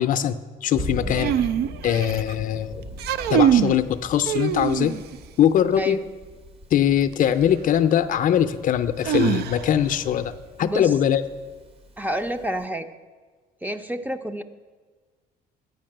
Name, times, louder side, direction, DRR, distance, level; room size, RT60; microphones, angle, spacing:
voice 1, 0.0-1.5 1.8-2.8 3.3-4.9 5.4-6.0 6.7-11.2, left 10 dB, 50° left, 11 dB, 0.5 m, -22 dB
Thunder, 0.7-12.6, right 1 dB, 35° right, 0.9 m, -40 dB
sound 1, 1.1-2.3 2.9-3.8 4.3-5.2 7.1-7.2 9.0-9.9, right 10 dB, 70° right, 0.4 m, -23 dB
voice 2, 10.6-11.0 12.0-12.9 13.6-14.4, equal, 10° right, 9 dB, 0.5 m, -28 dB
9.3 x 5.3 x 7.7 m, 1.4 s
cardioid pair, 110°, 17 cm